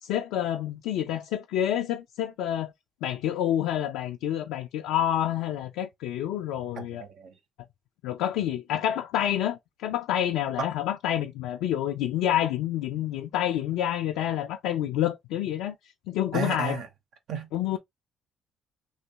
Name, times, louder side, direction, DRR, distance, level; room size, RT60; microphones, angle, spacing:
voice 1, 0.0-2.7 3.0-7.0 8.0-15.7 16.1-16.8 17.5-17.8, left 11 dB, 80° left, 0.3 m, -28 dB
voice 2, 7.0-7.3 16.3-16.9 17.3-17.5, right 5 dB, 70° right, 0.9 m, -32 dB
3.1 x 2.8 x 2.7 m
hypercardioid pair, 55°, 0 cm